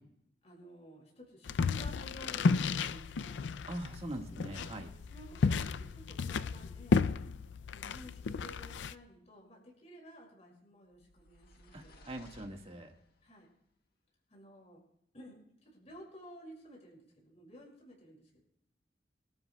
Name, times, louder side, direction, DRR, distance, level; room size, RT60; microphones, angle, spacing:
voice 1, 0.4-3.5 4.2-4.5 5.1-7.1 7.7-12.0 13.2-13.5 14.3-14.8 15.1-18.4, equal, 40° left, -3 dB, 6.1 m, -53 dB
sound 1, 1.5-8.9, left 4 dB, 90° left, 0.4 m, -33 dB
voice 2, 3.7-4.9 11.7-12.9, right 1 dB, 35° right, 2 dB, 1.7 m, -42 dB
sound 2, 10.9-13.3, left 1 dB, 60° left, 1.6 m, -59 dB
24.0 x 13.0 x 2.3 m, 0.76 s
head